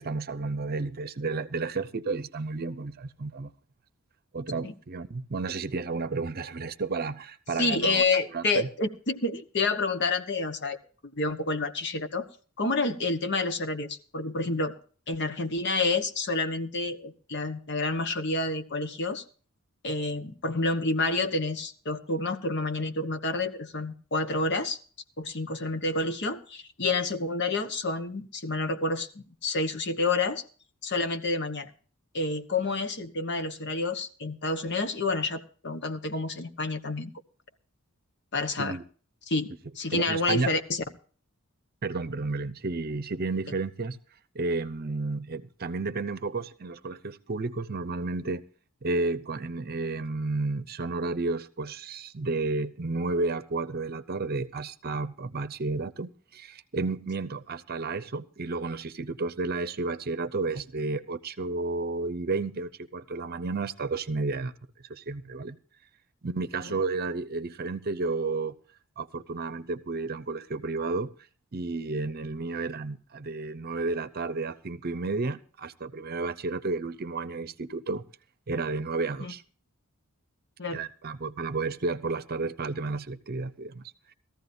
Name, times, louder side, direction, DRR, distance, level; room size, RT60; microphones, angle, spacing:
voice 1, 0.0-3.5 4.3-8.0 8.3-8.7 38.6-38.8 39.9-40.5 41.8-44.0 44.3-48.4 48.8-64.5 64.9-65.6 66.2-68.6 69.0-71.1 71.5-78.0 78.5-79.4 80.7-83.8, right 3 dB, 45° right, 0.7 m, -32 dB
voice 2, 7.6-10.8 11.2-12.3 12.6-14.7 15.1-19.2 19.8-24.8 25.2-30.4 30.8-31.7 32.1-37.1 38.3-38.8 39.3-40.8 79.2-79.3 80.6-80.8, left 3 dB, 55° left, 1.2 m, -29 dB
19.5 x 14.5 x 2.7 m
head